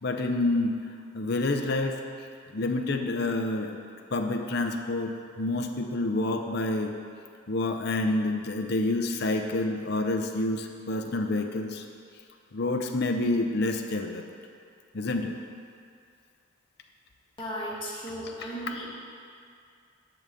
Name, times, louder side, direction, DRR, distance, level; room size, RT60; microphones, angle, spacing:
voice 1, 0.0-0.8 1.1-2.0 2.5-3.8 4.1-6.9 7.5-11.8 12.5-14.2 14.9-15.4, left 2 dB, 50° left, 4 dB, 0.6 m, -28 dB
voice 2, 17.4-18.9, equal, 25° left, -6 dB, 1.8 m, -35 dB
10.5 x 4.0 x 7.6 m, 2.3 s
head